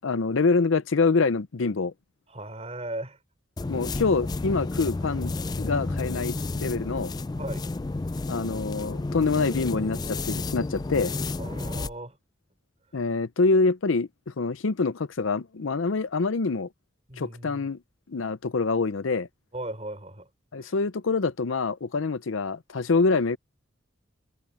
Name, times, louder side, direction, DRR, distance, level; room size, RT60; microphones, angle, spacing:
voice 1, 0.0-1.9 3.7-5.3 5.6-7.1 8.3-11.1 12.9-14.1 14.4-16.7 17.2-17.8 18.1-19.3 20.5-23.4, left 4 dB, 80° left, 0.6 m, -25 dB
voice 2, 2.3-3.2 7.4-7.7 11.4-12.2 17.1-17.7 19.5-20.3 20.6-20.7, right 1 dB, 30° right, 4.1 m, -37 dB
sound 1, 3.6-11.9, left 3 dB, 20° left, 0.3 m, -31 dB
head